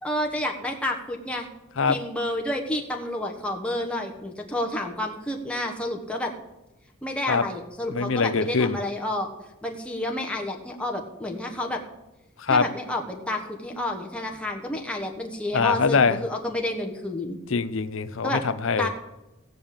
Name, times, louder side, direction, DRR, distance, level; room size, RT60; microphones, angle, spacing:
voice 1, 0.0-1.5 1.9-6.3 7.0-9.3 9.6-11.8 12.5-17.4 18.2-18.4 18.8-18.9, left 1 dB, 5° left, 1 dB, 1.2 m, -30 dB
voice 2, 7.9-8.8 12.4-12.7 15.5-16.2 17.5-18.9, left 5 dB, 65° left, 13 dB, 0.6 m, -23 dB
16.0 x 5.3 x 8.8 m, 1.0 s
head